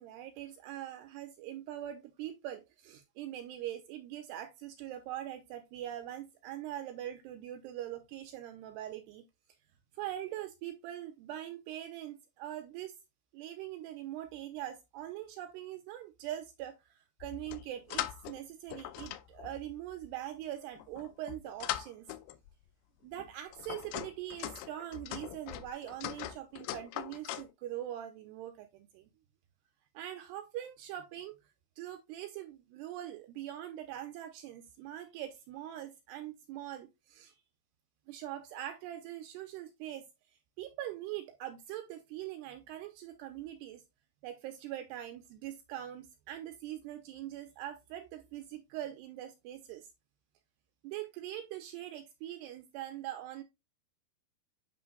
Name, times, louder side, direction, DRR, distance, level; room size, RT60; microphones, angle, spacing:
voice 1, 0.0-9.2 9.9-13.0 13.3-22.1 23.0-29.1 29.9-31.4 31.8-37.4 38.1-43.8 44.2-49.9 50.8-53.4, right 12 dB, 80° right, 2.6 m, -42 dB
sound 1, 17.2-18.4 18.7-20.1 20.8-22.5 23.1-27.5, left 13 dB, 85° left, 2.2 m, -41 dB
9.4 x 5.2 x 2.2 m
omnidirectional pair, 5.1 m